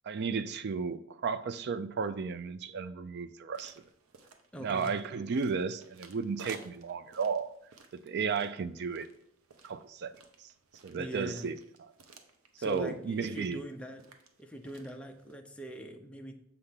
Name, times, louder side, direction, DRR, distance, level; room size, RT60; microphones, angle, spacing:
voice 1, 0.0-3.7 4.6-7.5 7.9-9.1 9.6-10.1 10.8-11.6 12.6-13.6, right 5 dB, 50° right, 13 dB, 0.4 m, -33 dB
sound 1, 3.5-15.4, right 4 dB, 80° right, 0.8 m, -56 dB
voice 2, 4.5-5.0 10.9-11.5 12.6-14.0 14.4-16.4, equal, 5° left, 3 dB, 0.5 m, -42 dB
6.8 x 3.4 x 5.6 m, 0.75 s
head